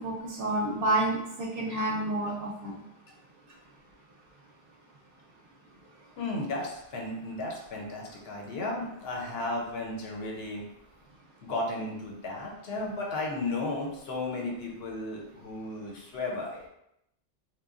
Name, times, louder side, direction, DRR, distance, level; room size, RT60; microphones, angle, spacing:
voice 1, 0.0-2.7, right 2 dB, 65° right, -1 dB, 0.7 m, -29 dB
voice 2, 6.2-10.6 11.4-16.7, left 2 dB, 65° left, -1 dB, 0.8 m, -34 dB
3.0 x 2.1 x 2.4 m, 0.80 s
omnidirectional pair, 1.1 m